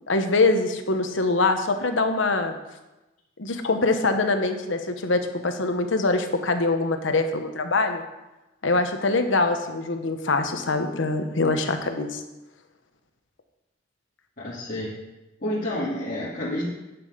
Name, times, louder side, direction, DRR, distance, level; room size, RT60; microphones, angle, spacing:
voice 1, 0.1-2.6 3.4-8.0 8.6-12.2, left 3 dB, 75° left, 6 dB, 1.0 m, -23 dB
voice 2, 14.4-14.9 15.4-16.7, left 1 dB, 45° left, -10 dB, 2.4 m, -29 dB
10.5 x 6.2 x 5.1 m, 1.0 s
head